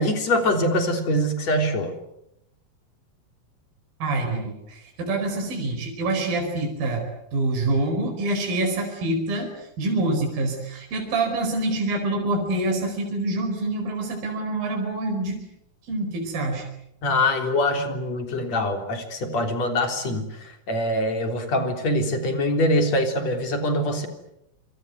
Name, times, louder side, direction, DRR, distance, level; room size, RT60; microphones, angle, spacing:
voice 1, 0.0-1.9 17.0-24.1, left 1 dB, 45° left, 5 dB, 4.5 m, -24 dB
voice 2, 4.0-7.0 7.3-9.5 9.8-15.4 15.9-16.6, right 2 dB, 60° right, 2 dB, 6.5 m, -26 dB
26.5 x 26.5 x 8.1 m, 0.80 s
omnidirectional pair, 4.6 m